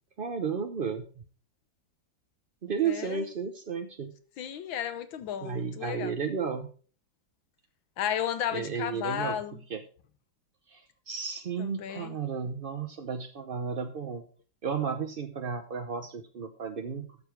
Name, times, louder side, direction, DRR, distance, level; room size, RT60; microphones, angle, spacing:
voice 1, 0.2-1.0 2.6-4.1 5.4-6.7 8.5-9.4 9.7-9.8 10.7-14.2 14.6-17.1, right 6 dB, 55° right, 0.6 m, -33 dB
voice 2, 2.9-3.3 4.4-6.1 8.0-9.6 11.6-12.1, left 9 dB, 85° left, 1.7 m, -33 dB
12.0 x 7.0 x 4.5 m
omnidirectional pair, 2.1 m